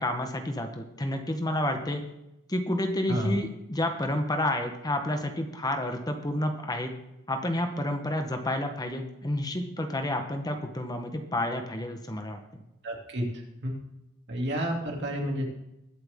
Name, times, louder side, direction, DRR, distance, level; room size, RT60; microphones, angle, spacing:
voice 1, 0.0-2.0 2.5-6.9 7.3-12.6, left 1 dB, 20° left, 5 dB, 1.1 m, -30 dB
voice 2, 12.8-13.3 13.6-13.7 14.3-15.5, equal, 55° right, 0 dB, 2.8 m, -30 dB
21.5 x 7.8 x 3.7 m, 0.89 s
head